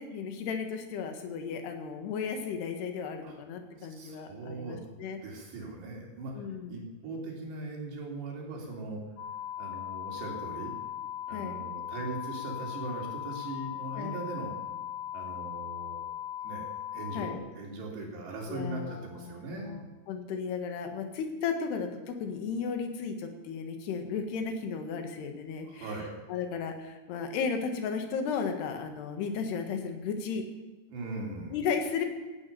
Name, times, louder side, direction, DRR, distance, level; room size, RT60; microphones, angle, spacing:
voice 1, 0.0-5.2 6.4-6.9 11.3-11.6 13.9-14.2 17.1-17.4 18.5-19.8 20.1-25.9 26.3-30.5 31.5-32.1, left 6 dB, 75° left, 5 dB, 3.7 m, -34 dB
voice 2, 3.8-4.8 5.2-9.0 9.6-10.7 11.3-14.6 15.1-16.1 16.4-19.8 25.7-26.2 30.9-31.6, right 2 dB, 80° right, -1 dB, 5.5 m, -40 dB
sound 1, 9.2-17.3, left 11 dB, 55° left, 2.8 m, -38 dB
17.0 x 12.0 x 6.9 m, 1.2 s
omnidirectional pair, 4.9 m